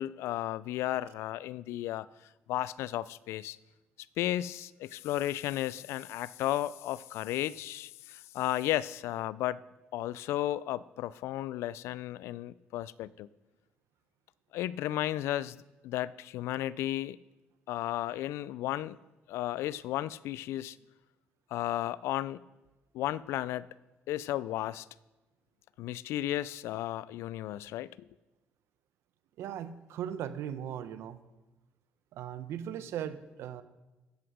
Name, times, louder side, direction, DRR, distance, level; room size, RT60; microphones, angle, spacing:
voice 1, 0.0-2.1 2.5-3.6 4.2-9.6 9.9-13.3 14.5-15.6 15.8-17.2 17.7-19.0 19.3-20.8 21.5-22.4 22.9-23.7 24.1-24.9 25.8-27.9, left 14 dB, 85° left, 20 dB, 0.3 m, -34 dB
voice 2, 29.4-31.2 32.1-33.6, right 9 dB, 75° right, 13 dB, 0.8 m, -38 dB
15.0 x 7.8 x 5.0 m, 1.1 s
cardioid pair, 95°, 4 cm